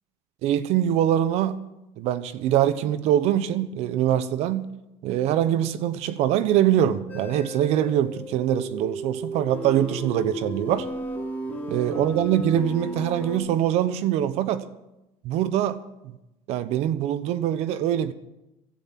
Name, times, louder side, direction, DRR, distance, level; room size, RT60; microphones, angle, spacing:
voice 1, 0.4-1.6 2.0-4.7 5.0-10.9 11.7-14.6 15.2-15.8 16.0-16.1 16.5-18.1, right 11 dB, 55° right, 1.0 m, -23 dB
sound 1, 7.1-13.4, right 1 dB, 15° left, 3.3 m, -34 dB
15.5 x 13.0 x 6.0 m
cardioid pair, 165°, 13 cm